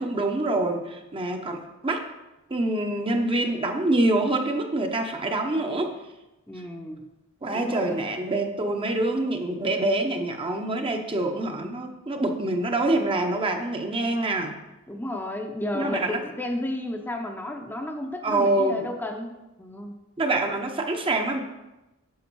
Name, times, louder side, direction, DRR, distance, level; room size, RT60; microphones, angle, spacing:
voice 1, 0.0-2.0 2.5-5.9 7.4-14.5 15.7-16.2 18.2-18.9 20.2-21.4, right 2 dB, 25° right, 4 dB, 0.8 m, -26 dB
voice 2, 6.5-7.1 7.5-8.1 14.9-20.0, left 1 dB, 10° left, 3 dB, 0.7 m, -33 dB
9.4 x 6.3 x 4.6 m, 1.0 s
head